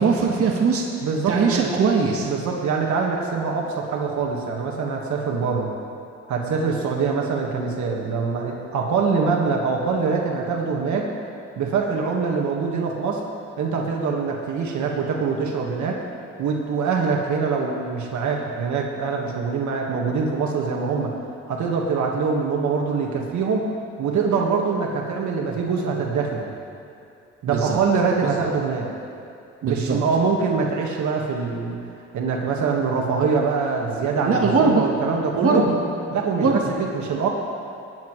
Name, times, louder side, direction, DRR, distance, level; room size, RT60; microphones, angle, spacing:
voice 1, 0.0-0.8 1.3-2.3 27.5-27.8 29.6-30.0 34.2-34.8 35.3-35.8 36.3-36.6, right 5 dB, 50° right, -1 dB, 1.5 m, -20 dB
voice 2, 1.0-1.7 2.2-5.7 6.3-11.1 11.6-13.2 13.6-16.0 16.4-21.1 21.5-23.7 24.0-26.5 27.4-28.9 29.6-31.8 32.1-35.6 36.1-37.3, right 5 dB, 70° right, 0 dB, 1.7 m, -24 dB
20.0 x 9.4 x 3.2 m, 2.7 s
cardioid pair, 90°, 30 cm